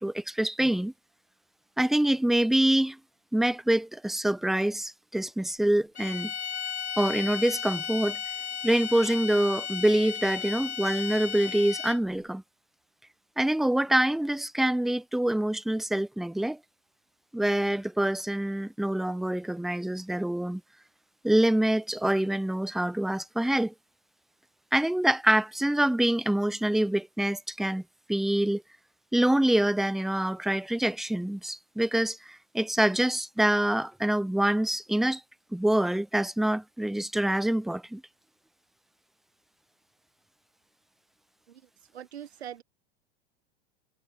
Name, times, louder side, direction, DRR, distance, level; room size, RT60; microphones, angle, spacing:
voice 1, 0.0-0.9 1.8-3.0 3.3-6.3 7.0-8.2 8.6-12.4 13.4-16.6 17.3-20.6 21.2-23.7 24.7-27.8 28.1-28.6 29.1-35.2 35.5-38.0, right 1 dB, ahead, 0.3 m, -26 dB
sound 1, 5.9-12.2, left 8 dB, 85° left, 3.4 m, -35 dB
voice 2, 41.9-42.6, right 10 dB, 80° right, 7.8 m, -42 dB
hypercardioid pair, 100°, 32 cm